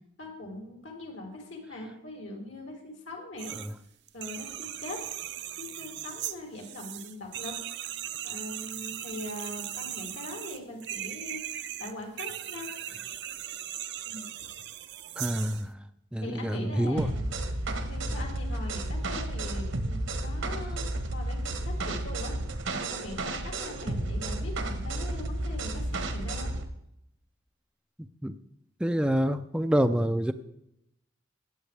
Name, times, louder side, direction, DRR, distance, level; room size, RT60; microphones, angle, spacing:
voice 1, 0.2-3.5 4.1-5.0 5.6-7.6 8.2-13.0 14.0-14.2 16.2-17.3 17.8-26.5, left 1 dB, 75° left, 0 dB, 3.1 m, -41 dB
sound 1, 3.4-3.7 4.1-15.7, right 12 dB, 60° right, 0.6 m, -38 dB
voice 2, 15.2-15.7 16.1-17.1 28.2-28.3 28.8-30.3, equal, 5° right, 8 dB, 0.4 m, -26 dB
sound 2, 17.0-26.7, right 1 dB, 80° right, 1.4 m, -32 dB
16.5 x 9.0 x 3.4 m, 0.80 s
head